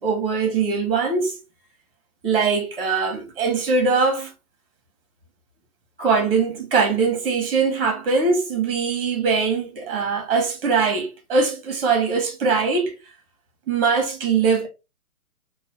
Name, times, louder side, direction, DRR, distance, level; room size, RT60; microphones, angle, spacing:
voice 1, 0.0-1.4 2.2-4.3 6.0-12.9 13.7-14.7, right 4 dB, 40° right, 1.4 m, -21 dB
3.1 x 2.4 x 4.0 m
hypercardioid pair, 145°, 44 cm